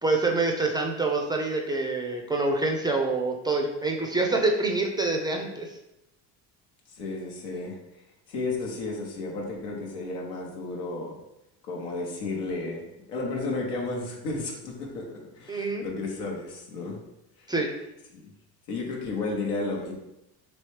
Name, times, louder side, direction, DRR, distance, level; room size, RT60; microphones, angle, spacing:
voice 1, 0.0-5.7 15.5-15.8 17.5-17.7, right 3 dB, 10° right, 1 dB, 0.3 m, -26 dB
voice 2, 6.9-7.8 8.3-11.2 11.6-12.8 13.1-17.0 17.4-17.5 18.1-18.3 18.7-19.9, left 3 dB, 85° left, -1 dB, 1.0 m, -33 dB
3.2 x 3.0 x 3.2 m, 0.87 s
supercardioid pair, 80°, 47 cm